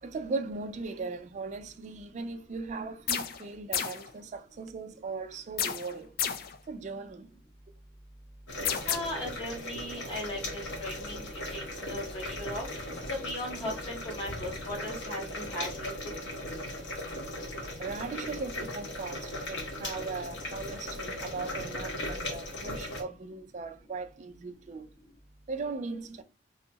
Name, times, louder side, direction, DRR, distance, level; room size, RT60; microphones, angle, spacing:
voice 1, 0.0-6.1 6.7-7.3 16.6-17.3 17.7-24.9 25.5-26.2, right 4 dB, 40° right, 0.3 m, -38 dB
sound 1, 3.1-3.4 3.7-4.1 5.6-6.6 8.6-9.0, left 8 dB, 55° left, 0.4 m, -31 dB
sound 2, 8.5-23.0, left 1 dB, 85° left, 1.0 m, -38 dB
voice 2, 8.9-11.3 11.5-12.6 13.1-15.9, left 1 dB, 30° left, 1.3 m, -37 dB
2.7 x 2.4 x 2.7 m
head